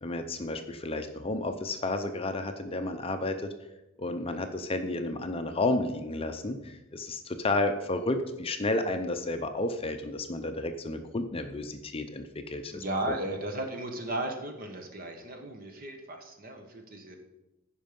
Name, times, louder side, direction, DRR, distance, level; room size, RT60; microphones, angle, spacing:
voice 1, 0.0-3.5 4.0-12.8, left 2 dB, 25° left, 6 dB, 0.6 m, -31 dB
voice 2, 12.7-17.2, right 1 dB, 40° right, 4 dB, 1.5 m, -35 dB
14.5 x 5.4 x 5.2 m, 0.97 s
head